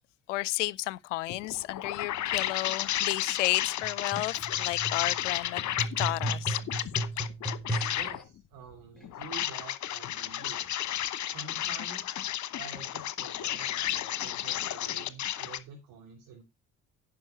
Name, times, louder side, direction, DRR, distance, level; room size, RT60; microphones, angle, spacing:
voice 1, 0.3-5.6 6.0-6.6, left 18 dB, 85° left, 0.5 m, -32 dB
sound 1, 1.3-8.2 9.0-15.6, left 12 dB, 50° left, 1.1 m, -33 dB
sound 2, 3.8-8.2 9.0-9.1, right 2 dB, ahead, 4.8 m, -36 dB
voice 2, 7.9-10.7 11.2-12.3 12.6-16.4, right 5 dB, 65° right, 3.0 m, -48 dB
10.5 x 5.2 x 5.7 m
hypercardioid pair, 50°, 36 cm